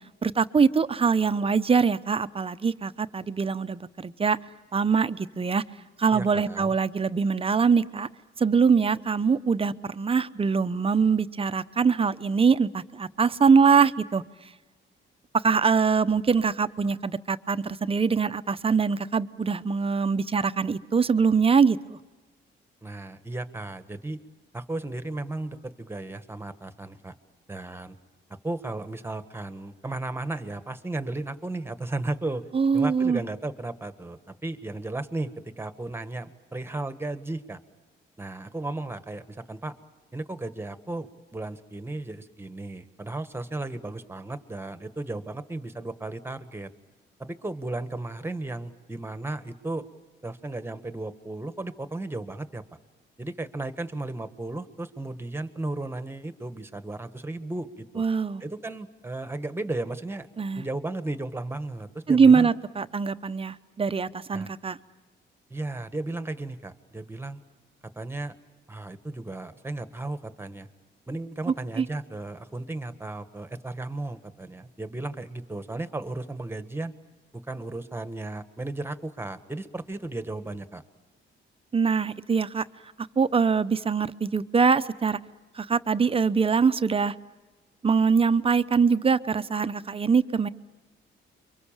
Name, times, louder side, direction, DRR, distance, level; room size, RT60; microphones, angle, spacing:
voice 1, 0.2-4.4 4.7-5.6 6.0-8.1 8.4-14.2 15.4-22.0 32.5-33.2 58.0-58.4 60.4-60.6 62.1-64.8 71.8-71.9 81.7-82.6 83.2-85.2 85.5-87.1 87.8-90.5, right 5 dB, 30° right, 13 dB, 0.8 m, -23 dB
voice 2, 6.1-6.7 22.8-24.2 24.5-27.1 27.5-28.0 28.4-32.5 32.7-37.6 38.2-39.7 40.1-46.7 47.2-49.9 50.2-52.6 53.2-58.0 58.4-60.3 60.5-62.5 64.3-64.5 65.5-67.4 67.9-68.3 68.7-70.7 71.1-76.9 77.3-80.8, right 2 dB, 10° right, 10 dB, 1.5 m, -35 dB
29.5 x 24.0 x 7.4 m, 1.2 s
cardioid pair, 90°, 20 cm